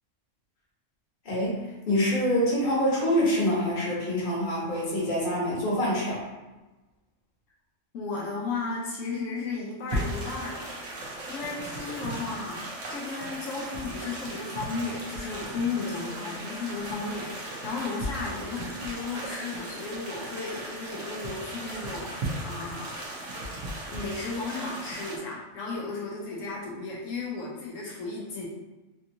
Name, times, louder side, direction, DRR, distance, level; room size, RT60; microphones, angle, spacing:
voice 1, 1.2-6.2, equal, 40° left, -6 dB, 1.1 m, -26 dB
voice 2, 7.9-23.0 23.9-28.4, left 4 dB, 80° left, -4 dB, 1.0 m, -34 dB
sound 1, 9.9-25.2, right 1 dB, 80° right, 1.1 m, -37 dB
3.4 x 2.8 x 2.5 m, 1.1 s
omnidirectional pair, 1.3 m